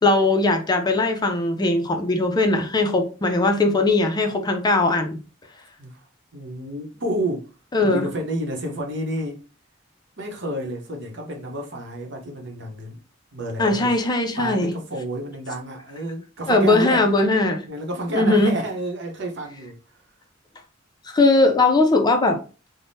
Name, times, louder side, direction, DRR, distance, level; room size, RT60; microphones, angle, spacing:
voice 1, 0.0-5.2 7.7-8.0 13.6-14.7 16.5-17.6 18.1-18.5 21.1-22.4, left 2 dB, 20° left, 0.4 m, -19 dB
voice 2, 6.3-7.5 7.8-9.4 10.2-13.0 13.3-13.9 14.4-17.1 17.7-19.8, right 1 dB, 65° right, 0.8 m, -30 dB
3.4 x 2.1 x 2.6 m
head